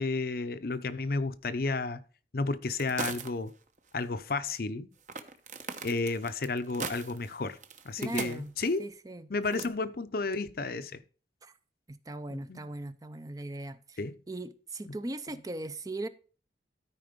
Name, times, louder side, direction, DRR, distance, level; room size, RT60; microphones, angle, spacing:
voice 1, 0.0-2.0 2.3-3.5 3.9-4.9 5.8-7.6 7.8-8.8 9.3-11.0 12.3-12.6 14.0-14.2, left 3 dB, 55° left, 0.6 m, -32 dB
sound 1, 2.8-3.5 3.8-3.9 5.1-8.8 9.5-9.7, right 5 dB, 45° right, 1.0 m, -40 dB
voice 2, 8.0-8.5 8.8-9.7 11.4-11.5 11.9-14.0 14.3-16.1, right 2 dB, 20° right, 0.4 m, -39 dB
13.0 x 5.0 x 5.1 m
head